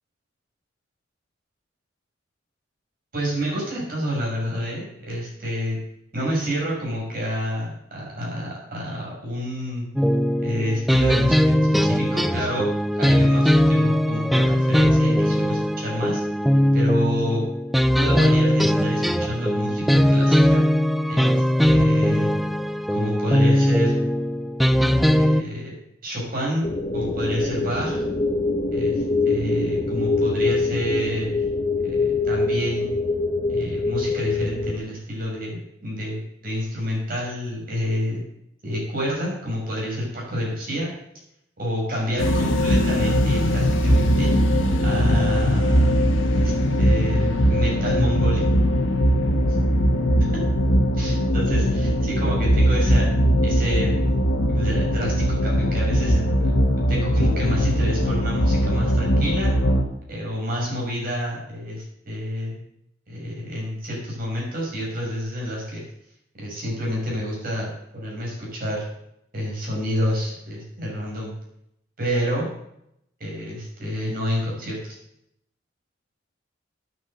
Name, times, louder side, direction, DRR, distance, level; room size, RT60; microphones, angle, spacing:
voice 1, 3.1-5.8 6.1-9.9 10.4-12.7 12.9-16.2 16.7-17.5 17.9-20.6 21.1-22.3 22.9-23.9 24.7-25.8 26.0-28.0 28.7-31.4 31.8-32.9 33.5-38.2 38.6-40.9 41.6-44.3 44.8-45.9 46.3-48.4 50.9-53.1 53.4-53.9 54.5-56.5 56.9-59.5 60.1-62.6 63.1-65.8 66.4-68.9 69.3-71.3 72.0-72.5 73.2-75.0, equal, 50° right, -3 dB, 6.3 m, -28 dB
sound 1, 10.0-25.4, equal, ahead, 0.4 m, -20 dB
sound 2, 26.6-34.8, left 3 dB, 30° left, 1.0 m, -24 dB
sound 3, 42.2-59.8, equal, 90° left, 1.7 m, -20 dB
10.5 x 7.5 x 7.9 m, 0.78 s
head